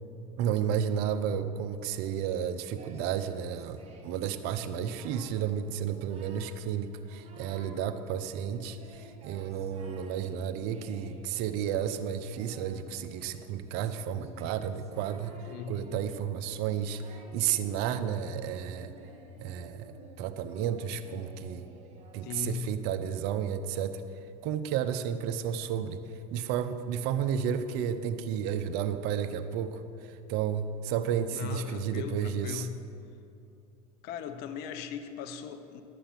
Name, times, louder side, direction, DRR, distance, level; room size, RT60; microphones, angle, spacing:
voice 1, 0.4-15.4 15.7-18.9 19.4-19.9 20.2-21.6 22.1-24.0 24.4-26.0 26.3-29.8 30.3-32.7, right 8 dB, 65° right, 11 dB, 0.8 m, -32 dB
Singing, 2.8-4.3 4.6-5.4 5.8-6.6 6.9-7.8 8.2-22.7, right 3 dB, 35° right, 1.9 m, -53 dB
voice 2, 15.5-16.0 22.2-22.8 31.3-32.8 34.0-35.8, left 8 dB, 60° left, 9 dB, 0.9 m, -38 dB
11.5 x 8.6 x 5.8 m, 2.7 s
supercardioid pair, 100°, 18 cm